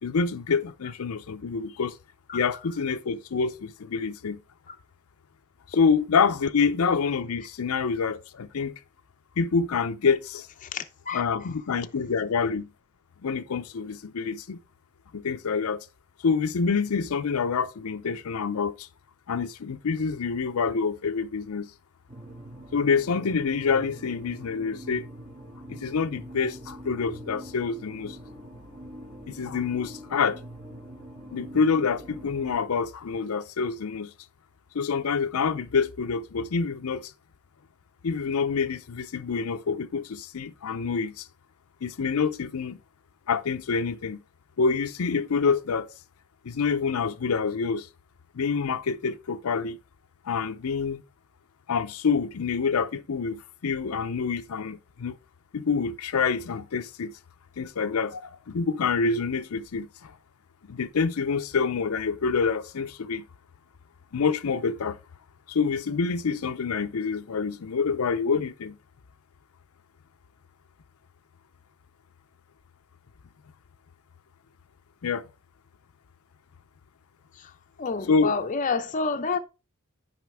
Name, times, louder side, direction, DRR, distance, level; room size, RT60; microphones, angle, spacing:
voice 1, 0.0-1.9 2.3-4.4 5.7-8.8 9.4-10.5 11.1-12.7 13.2-14.6 15.1-15.9 16.2-18.9 19.3-21.7 22.7-25.1 25.7-28.2 29.3-30.4 31.3-34.1 34.7-37.1 38.0-41.3 41.8-42.8 43.3-44.2 44.6-45.9 46.4-47.9 48.3-49.8 50.2-51.0 51.7-55.2 55.5-57.1 57.6-60.1 60.7-63.2 64.1-65.0 65.5-68.8 75.0-75.2 78.1-78.3, left 5 dB, 90° left, 0.5 m, -27 dB
voice 2, 10.7-11.2 77.4-77.5 77.8-79.4, left 4 dB, 35° left, 0.6 m, -29 dB
sound 1, 22.1-32.6, equal, 40° right, 2.3 m, -44 dB
9.4 x 5.0 x 3.5 m
head